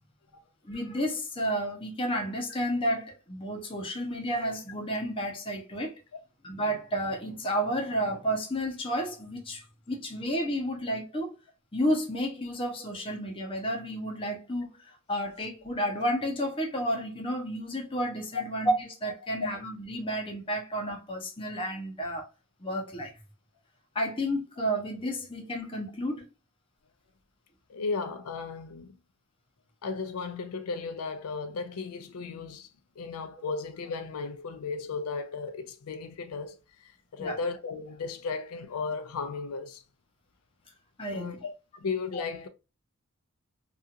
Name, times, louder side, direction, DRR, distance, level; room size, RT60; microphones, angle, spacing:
voice 1, 0.6-6.0 6.4-11.3 11.7-22.2 22.6-23.1 23.9-26.3 37.2-37.4 41.0-41.4 42.1-42.2, equal, 25° left, 0.7 m, -31 dB
voice 2, 27.7-28.9 29.8-32.7 33.0-39.8 41.1-41.5 41.8-42.5, left 4 dB, 90° left, 0.4 m, -35 dB
2.8 x 2.4 x 2.4 m
head